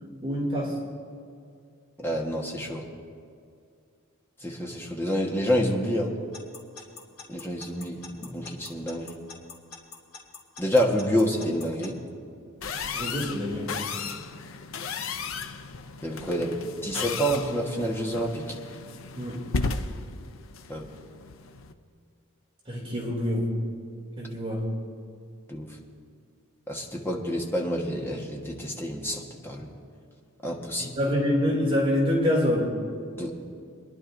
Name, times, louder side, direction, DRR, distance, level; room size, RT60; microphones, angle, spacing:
voice 1, 0.2-0.8 12.9-13.7 19.2-19.5 22.7-23.5 24.2-24.7 30.8-32.7, left 1 dB, 25° right, -4 dB, 2.7 m, -26 dB
voice 2, 2.0-2.8 4.4-6.1 7.3-9.2 10.6-12.0 16.0-18.5 20.7-20.8 25.5-25.7 26.7-29.7 30.4-31.0 33.1-33.3, equal, 10° left, -1 dB, 1.2 m, -28 dB
Alarm / Clock, 6.3-11.9, left 5 dB, 80° left, 2.2 m, -43 dB
sound 1, 12.6-21.7, left 4 dB, 65° left, 0.6 m, -35 dB
25.5 x 11.0 x 2.6 m, 2.4 s
head